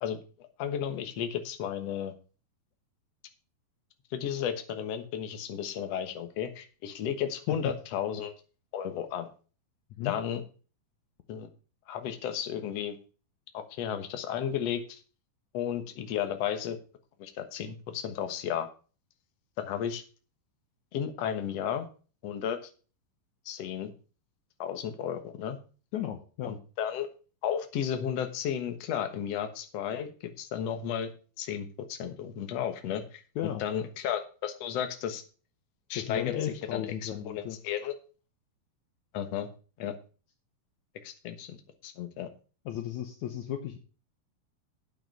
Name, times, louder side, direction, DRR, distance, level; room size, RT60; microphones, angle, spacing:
voice 1, 0.0-2.1 4.1-8.3 8.7-9.3 10.0-10.4 11.3-11.5 11.9-13.0 13.5-15.0 15.5-16.8 17.2-18.7 19.6-20.0 20.9-21.9 22.2-22.7 23.5-23.9 24.6-25.6 26.4-27.1 27.4-31.1 31.4-35.2 35.9-36.3 36.7-37.9 39.1-39.5 39.8-40.0 41.0-41.6 41.8-42.3, left 9 dB, 65° left, 8 dB, 1.7 m, -33 dB
voice 2, 25.9-26.5 33.4-33.7 35.9-37.6 42.7-43.8, left 11 dB, 80° left, 7 dB, 1.7 m, -34 dB
9.3 x 8.1 x 5.3 m, 0.36 s
omnidirectional pair, 4.6 m